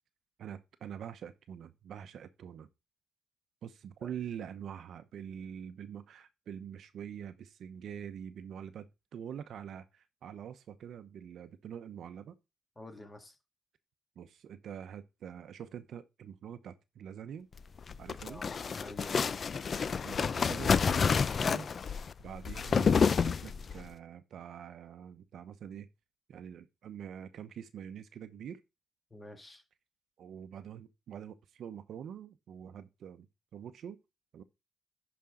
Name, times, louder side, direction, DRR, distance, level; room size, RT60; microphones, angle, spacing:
voice 1, 0.4-2.7 3.6-12.4 14.2-17.5 18.0-18.4 20.0-21.1 21.4-21.7 22.2-25.9 26.3-28.6 30.2-34.0 34.3-34.4, right 8 dB, 65° right, 0.8 m, -45 dB
voice 2, 12.8-13.4 18.3-19.5 29.1-29.6, left 2 dB, 15° left, 1.9 m, -49 dB
sound 1, 17.8-23.8, left 6 dB, 45° left, 0.4 m, -29 dB
10.5 x 5.2 x 3.7 m
cardioid pair, 90°, 0 cm